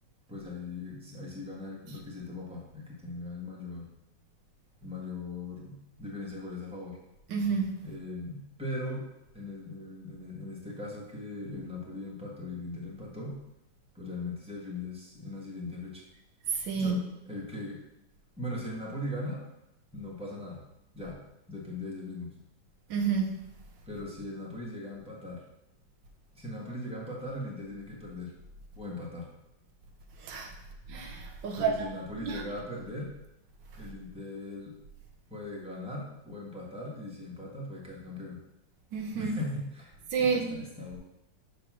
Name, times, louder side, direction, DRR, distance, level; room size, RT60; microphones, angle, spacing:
voice 1, 0.3-3.8 4.8-7.0 7.8-9.1 9.3-13.4 13.9-16.0 16.7-17.8 18.4-19.4 19.9-20.6 20.9-21.2 21.5-22.3 23.9-25.4 26.3-28.3 28.7-29.3 31.5-33.1 33.8-34.7 35.3-38.4 39.1-39.9 40.2-41.0, left 2 dB, 5° right, 1.4 m, -39 dB
voice 2, 7.3-7.7 16.5-17.0 22.9-23.4 30.2-30.5 30.9-31.9 32.2-32.4 38.9-39.4 40.1-40.5, right 5 dB, 85° right, 1.5 m, -29 dB
6.9 x 3.3 x 6.1 m
omnidirectional pair, 1.9 m